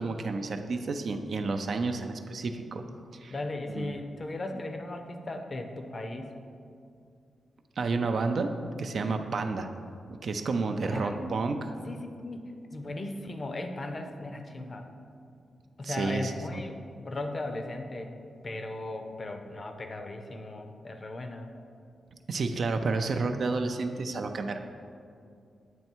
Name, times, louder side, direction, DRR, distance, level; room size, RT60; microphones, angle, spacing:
voice 1, 0.0-2.8 3.2-3.3 3.8-3.9 7.8-8.5 8.8-9.7 10.1-11.6 12.8-12.9 15.8-16.6 22.3-24.6, right 3 dB, 55° right, 6 dB, 0.4 m, -30 dB
voice 2, 3.3-6.4 10.8-11.3 11.9-12.4 12.7-14.9 15.8-18.1 18.4-21.5, left 2 dB, 35° left, 5 dB, 0.5 m, -37 dB
8.9 x 3.2 x 4.5 m, 2.4 s
wide cardioid pair, 115°, 0 cm